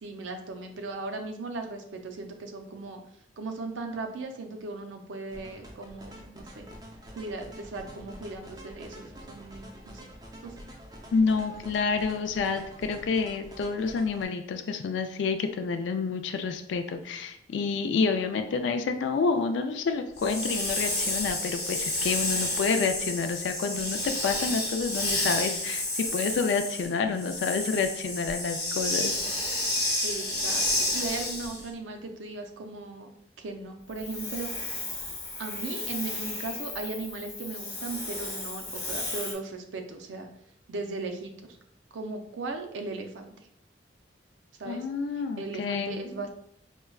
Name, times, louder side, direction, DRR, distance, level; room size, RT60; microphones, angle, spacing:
voice 1, 0.0-3.0 3.4-6.7 7.1-10.0 10.4-10.6 30.0-33.1 33.4-34.5 35.4-40.3 40.7-41.6 41.9-43.3 44.6-44.9 45.4-46.3, right 3 dB, 90° right, 5 dB, 0.5 m, -37 dB
sound 1, 5.3-14.3, equal, 20° right, 0.4 m, -47 dB
voice 2, 11.1-29.1 44.7-46.3, left 5 dB, 70° left, 6 dB, 0.3 m, -29 dB
Hiss, 20.2-31.7 33.9-39.3, left 2 dB, 20° left, 0.9 m, -31 dB
4.5 x 2.2 x 2.3 m, 0.72 s
head